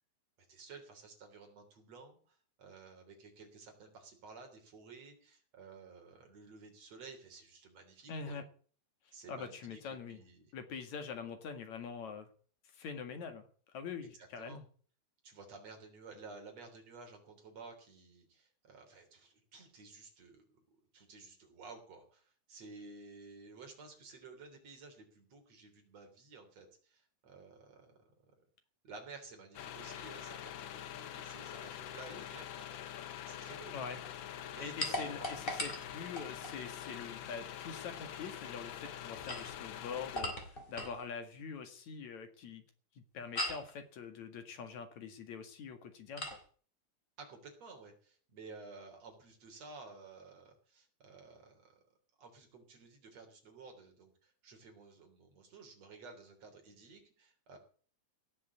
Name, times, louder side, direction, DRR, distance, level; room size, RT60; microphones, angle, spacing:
voice 1, 0.5-8.4 9.1-9.8 10.1-10.5 14.2-14.6 15.2-20.6 20.9-28.0 28.8-33.7 34.3-35.7 47.2-51.8 52.2-57.6, right 4 dB, 60° right, 3 dB, 4.6 m, -54 dB
voice 2, 8.1-8.4 9.3-10.2 10.5-12.3 12.7-13.5 13.7-14.6 33.7-34.0 34.6-42.6 43.0-46.4, left 6 dB, 70° left, 7 dB, 3.2 m, -44 dB
sound 1, 29.5-40.2, left 10 dB, 85° left, 1.0 m, -45 dB
sound 2, 34.8-36.6 39.1-41.0 43.4-43.7 46.2-46.4, left 1 dB, 15° left, 3.6 m, -39 dB
17.5 x 7.1 x 8.3 m, 0.44 s
omnidirectional pair, 3.4 m